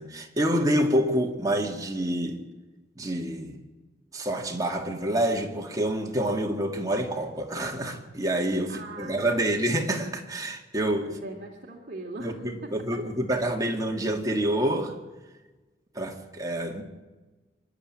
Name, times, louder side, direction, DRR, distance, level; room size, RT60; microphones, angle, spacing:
voice 1, 0.0-2.4 3.0-3.6 4.1-11.2 12.2-14.9 15.9-16.8, right 1 dB, 20° right, 2.2 m, -27 dB
voice 2, 8.7-9.5 11.0-12.3 12.6-12.7, right 2 dB, 45° right, 2.4 m, -40 dB
26.0 x 11.5 x 9.0 m
head